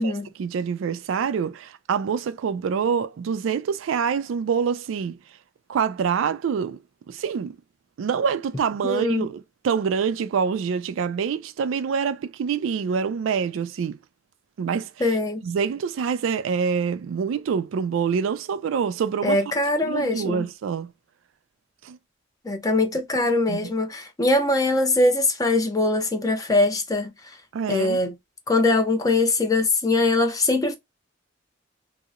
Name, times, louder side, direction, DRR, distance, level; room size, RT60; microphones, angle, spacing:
voice 1, 0.4-5.2 5.7-6.8 7.1-7.6 8.0-14.0 14.6-15.2 15.4-19.4 19.8-20.9 21.8-22.0 23.5-23.7 27.5-28.0, right 6 dB, 80° right, 0.3 m, -26 dB
voice 2, 8.8-9.3 15.0-15.4 19.2-20.5 22.4-27.1 27.7-28.1 28.5-30.8, left 2 dB, 20° left, 0.5 m, -22 dB
2.7 x 2.0 x 2.3 m
head